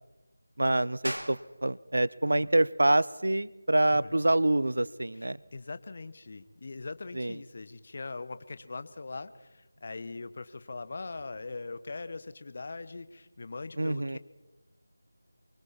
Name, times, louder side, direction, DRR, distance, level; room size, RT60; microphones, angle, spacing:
voice 1, 0.6-5.4 7.1-7.3 13.8-14.2, right 1 dB, 60° right, 20 dB, 0.6 m, -26 dB
sound 1, 1.0-11.3, equal, 85° right, 2.3 m, -48 dB
voice 2, 5.2-14.2, left 3 dB, 40° left, 13 dB, 1.0 m, -41 dB
28.5 x 24.0 x 4.2 m, 1.0 s
figure-of-eight pair, 165°, 0 cm